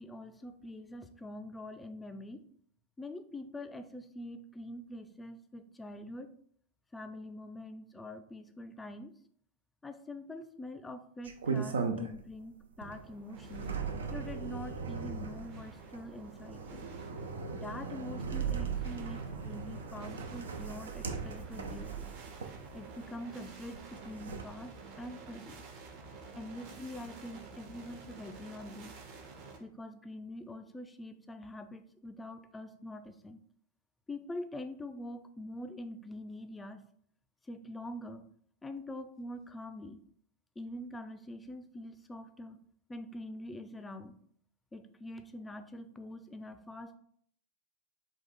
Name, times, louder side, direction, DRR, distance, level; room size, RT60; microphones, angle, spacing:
voice 1, 0.0-2.4 3.0-6.3 6.9-9.1 9.8-13.7 14.1-16.9 17.5-22.1 22.7-25.6 26.4-29.0 29.6-33.4 34.1-36.8 37.5-38.3 38.6-40.0 40.6-42.6 42.9-44.2 44.7-47.0, left 1 dB, 10° left, 9 dB, 0.4 m, -45 dB
sound 1, 11.2-12.4 12.8-23.1 23.7-24.4, right 5 dB, 70° right, 0.5 m, -38 dB
sound 2, 12.9-29.6, right 4 dB, 45° right, 0.9 m, -50 dB
3.9 x 2.4 x 4.1 m, 0.62 s
figure-of-eight pair, 90°, 0 cm